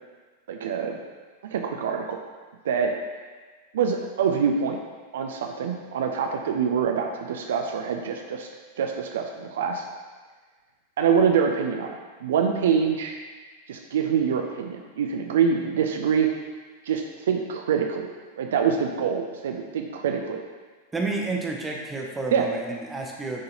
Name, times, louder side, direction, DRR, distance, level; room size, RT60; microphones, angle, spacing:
voice 1, 0.5-1.0 1.4-2.2 2.6-2.9 3.7-4.8 5.1-8.5 8.8-9.8 11.0-13.2 13.7-16.3 16.9-18.1 18.4-20.4 22.3-22.4, right 7 dB, 60° right, 3 dB, 0.4 m, -25 dB
voice 2, 20.9-23.4, right 3 dB, 10° right, -1 dB, 0.9 m, -30 dB
9.5 x 3.8 x 2.8 m, 1.4 s
figure-of-eight pair, 90°, 0 cm